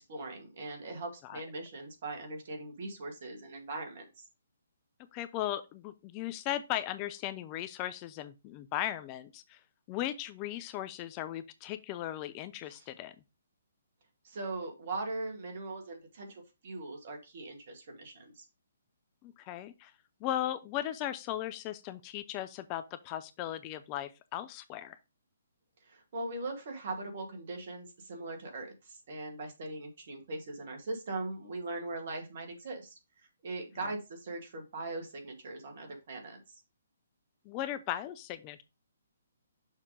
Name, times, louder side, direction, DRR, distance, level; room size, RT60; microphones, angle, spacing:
voice 1, 0.0-4.2 12.7-12.9 14.2-18.4 25.8-33.0 33.4-36.6, right 2 dB, 50° right, 2.1 m, -40 dB
voice 2, 5.1-9.6 9.9-13.1 19.2-19.9 20.2-25.0 37.5-38.6, left 12 dB, 25° left, 0.4 m, -37 dB
6.5 x 3.5 x 5.0 m
figure-of-eight pair, 130°, 0 cm